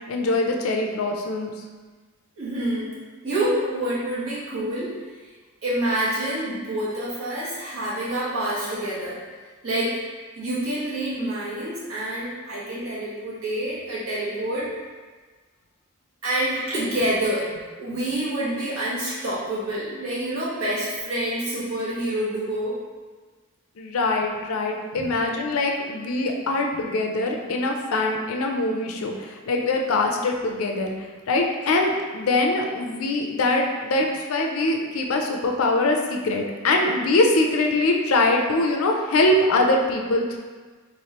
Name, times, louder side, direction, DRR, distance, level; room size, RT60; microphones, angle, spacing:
voice 1, 0.1-1.5 23.8-40.4, left 2 dB, 80° left, 2 dB, 0.5 m, -23 dB
voice 2, 2.4-5.0 5.6-9.2 9.6-10.0 10.4-14.7 16.2-17.5 17.8-22.8 24.9-25.1, right 1 dB, 85° right, -7 dB, 1.2 m, -27 dB
3.5 x 3.1 x 2.9 m, 1.4 s
head